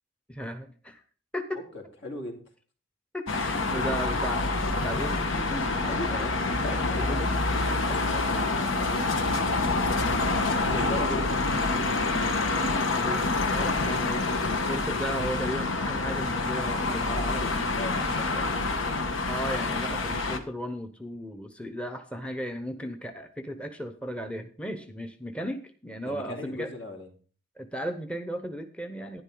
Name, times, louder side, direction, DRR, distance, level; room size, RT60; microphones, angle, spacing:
voice 1, 0.3-1.0 1.3-1.6 3.1-4.5 4.8-5.7 7.0-7.2 10.7-11.3 13.0-17.2 19.3-26.7 27.6-29.2, equal, 5° left, 7 dB, 0.7 m, -35 dB
voice 2, 1.7-2.4 3.8-4.2 5.8-7.4 7.6-10.1 10.6-12.1 17.0-18.9 26.0-27.1, left 1 dB, 65° left, 1 dB, 2.8 m, -39 dB
sound 1, 3.3-20.4, left 3 dB, 85° left, 1.3 m, -27 dB
11.5 x 10.5 x 3.8 m, 0.41 s
head